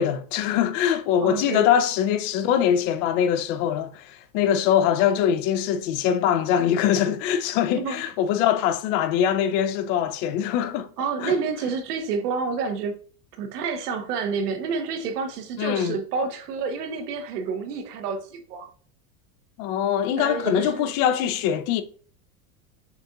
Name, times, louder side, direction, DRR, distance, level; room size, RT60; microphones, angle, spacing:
voice 1, 0.0-10.9 11.2-11.3 15.6-16.0 19.6-21.8, left 9 dB, 55° left, 0.6 m, -23 dB
voice 2, 1.2-1.7 7.8-8.0 11.0-13.0 13.4-18.7 20.2-20.9, right 5 dB, 80° right, 1.0 m, -29 dB
6.8 x 2.7 x 2.3 m
supercardioid pair, 110°, 46 cm